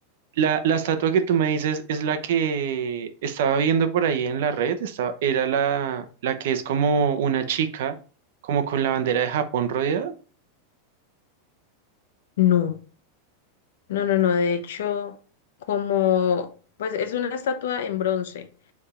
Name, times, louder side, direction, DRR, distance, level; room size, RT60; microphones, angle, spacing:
voice 1, 0.4-8.0 8.4-10.1, right 7 dB, 60° right, 0.9 m, -24 dB
voice 2, 12.4-12.8 13.9-15.2 15.7-16.5 16.8-18.5, left 9 dB, 75° left, 0.9 m, -23 dB
6.9 x 3.6 x 4.3 m
supercardioid pair, 175°, 0 cm